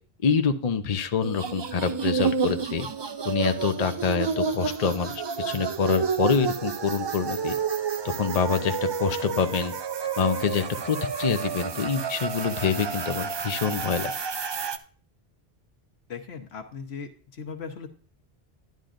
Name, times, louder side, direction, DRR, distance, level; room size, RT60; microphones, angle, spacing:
voice 1, 0.2-2.9 3.2-7.6 8.0-9.7 10.2-14.1, left 6 dB, 45° left, 7 dB, 0.7 m, -26 dB
sound 1, 1.2-14.8, right 6 dB, 40° right, 0.3 m, -30 dB
voice 2, 16.1-17.9, left 6 dB, 85° left, 5 dB, 1.3 m, -38 dB
11.5 x 10.5 x 2.6 m, 0.43 s
omnidirectional pair, 1.0 m